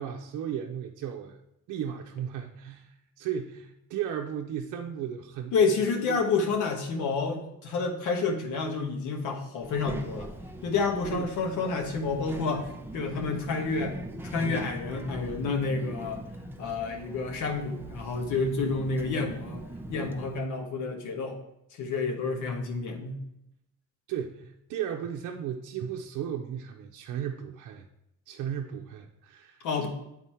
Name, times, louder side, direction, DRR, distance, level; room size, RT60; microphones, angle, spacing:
voice 1, 0.0-1.4 1.7-5.6 6.1-6.2 11.1-11.3 24.1-27.9 28.3-29.9, right 9 dB, 85° right, 2 dB, 0.6 m, -35 dB
voice 2, 5.5-10.3 10.6-12.7 12.9-14.0 14.2-16.2 16.6-19.6 19.9-21.4 21.7-23.2 29.6-29.9, left 4 dB, 85° left, 3 dB, 1.3 m, -29 dB
Child speech kid speaking, 9.6-20.4, right 1 dB, 5° right, 0.6 m, -41 dB
8.3 x 4.0 x 4.3 m, 0.81 s
cardioid pair, 90°, 30 cm